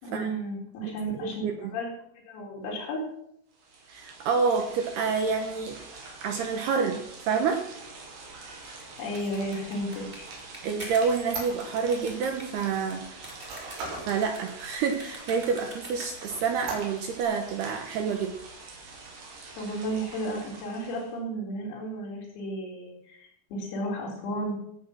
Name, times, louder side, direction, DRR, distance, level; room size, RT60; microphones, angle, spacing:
voice 1, 0.0-1.4 1.7-1.9 2.3-3.0 8.7-10.3 19.6-24.6, right 1 dB, 90° left, -3 dB, 7.0 m, -33 dB
voice 2, 1.2-1.7 3.9-5.8 6.2-7.6 10.6-13.0 13.5-18.3, right 5 dB, 75° right, 4 dB, 2.6 m, -28 dB
sound 1, 3.5-21.2, right 3 dB, 55° right, 4.5 m, -46 dB
sound 2, 8.5-16.4, right 1 dB, 15° right, 2.7 m, -45 dB
Squeak, 9.1-12.1 12.6-14.2 14.6-14.7 15.1-15.8 16.2-17.2, right 3 dB, 90° right, 8.7 m, -40 dB
17.5 x 8.4 x 6.2 m, 0.73 s
omnidirectional pair, 5.9 m